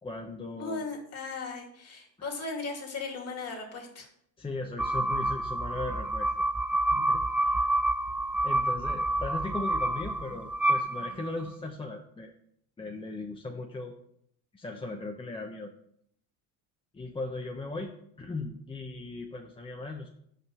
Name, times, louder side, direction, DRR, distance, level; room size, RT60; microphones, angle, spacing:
voice 1, 0.0-0.9 2.2-2.3 4.4-6.4 6.9-7.7 8.4-12.3 12.8-13.9 14.5-15.7 16.9-20.1, left 2 dB, 15° left, 2 dB, 0.8 m, -38 dB
voice 2, 0.5-4.1, left 3 dB, 40° left, 2 dB, 2.3 m, -37 dB
sound 1, 4.8-11.5, right 1 dB, 5° right, 0.4 m, -28 dB
5.8 x 5.2 x 6.3 m, 0.69 s
supercardioid pair, 100°, 39 cm